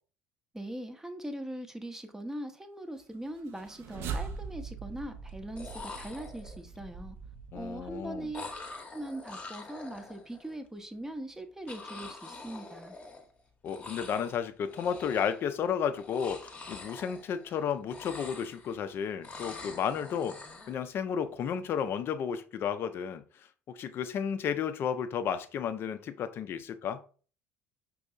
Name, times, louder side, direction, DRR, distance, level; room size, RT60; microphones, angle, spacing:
voice 1, 0.5-7.2 7.5-8.6 8.9-12.9, right 1 dB, 10° right, 0.6 m, -41 dB
sound 1, 3.1-3.3 3.7-4.3 5.3-5.4 5.6-6.8 8.3-10.5 11.7-13.4 13.6-14.4 14.7-15.5 15.9-17.6 17.8-18.9 19.2-20.8, left 3 dB, 25° left, 0.9 m, -45 dB
sound 2, 3.4-8.7, right 5 dB, 50° right, 0.5 m, -42 dB
voice 2, 7.5-8.3 13.6-20.4 20.7-23.2 23.7-27.0, left 7 dB, 45° left, 0.5 m, -32 dB
5.2 x 2.7 x 2.5 m
figure-of-eight pair, 65°, 6 cm